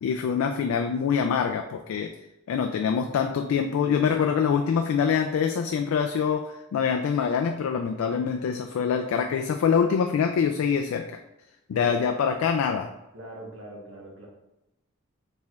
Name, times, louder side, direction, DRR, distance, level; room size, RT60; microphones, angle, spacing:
voice 1, 0.0-2.1 2.5-11.0 11.7-12.9, left 6 dB, 90° left, 5 dB, 0.3 m, -25 dB
voice 2, 11.7-12.5 13.1-14.3, equal, 70° right, -3 dB, 1.2 m, -42 dB
4.4 x 3.4 x 2.4 m, 0.91 s
head